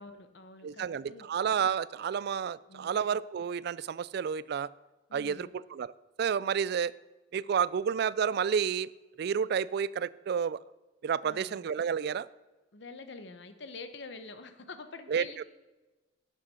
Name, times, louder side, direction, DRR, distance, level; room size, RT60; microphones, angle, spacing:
voice 1, 0.0-1.3 2.6-3.0 5.1-5.5 11.2-11.6 12.7-15.4, left 3 dB, 60° left, 9 dB, 0.9 m, -46 dB
voice 2, 0.6-4.7 5.1-5.9 6.2-6.9 7.3-8.9 9.2-10.6 11.0-12.3 15.1-15.4, right 7 dB, 55° right, 20 dB, 0.3 m, -30 dB
11.5 x 7.5 x 5.6 m, 1.2 s
head